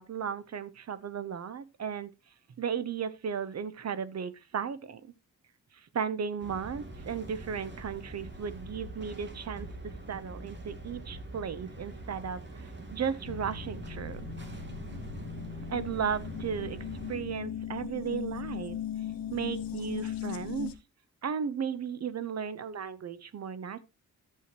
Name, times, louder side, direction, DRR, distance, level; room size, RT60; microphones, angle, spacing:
voice 1, 0.0-2.1 2.6-5.0 5.9-12.4 12.9-14.3 15.7-18.8 19.3-20.8 21.2-23.8, right 7 dB, 50° right, 0.8 m, -35 dB
sound 1, 6.4-17.2, right 2 dB, 30° right, 2.3 m, -44 dB
sound 2, 13.3-20.7, left 9 dB, 80° left, 1.1 m, -38 dB
11.5 x 7.7 x 2.9 m
wide cardioid pair, 140°, 34 cm